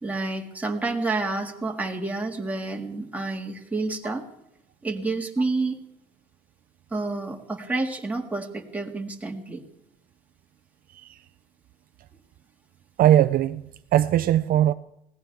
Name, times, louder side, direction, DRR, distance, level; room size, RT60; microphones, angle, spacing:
voice 1, 0.0-4.2 4.8-5.8 6.9-9.6, right 3 dB, 10° right, 1 dB, 2.0 m, -29 dB
voice 2, 13.0-13.6 13.9-14.7, right 12 dB, 60° right, 12 dB, 0.5 m, -19 dB
21.0 x 17.0 x 3.5 m, 0.83 s
cardioid pair, 110°, 17 cm